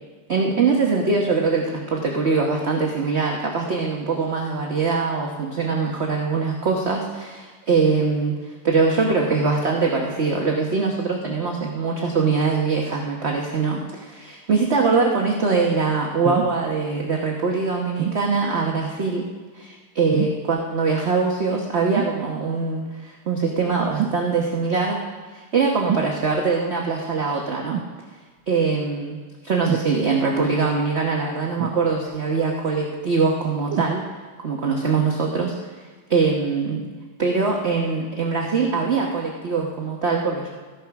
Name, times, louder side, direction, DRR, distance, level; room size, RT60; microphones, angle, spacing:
voice 1, 0.3-19.2 19.5-25.0 25.3-27.8 28.5-29.2 29.4-34.0 34.4-35.5 36.1-36.8 37.2-40.5, right 4 dB, 40° right, 0 dB, 1.1 m, -22 dB
sound 1, 16.2-16.6 18.0-18.2 20.1-20.5 22.0-22.2 24.0-24.2 25.9-26.1 27.7-28.0 29.7-29.9 31.6-32.2 33.7-34.0 34.8-34.9, right 9 dB, 70° right, 1.5 m, -26 dB
14.0 x 10.5 x 5.9 m, 1.4 s
omnidirectional pair, 2.3 m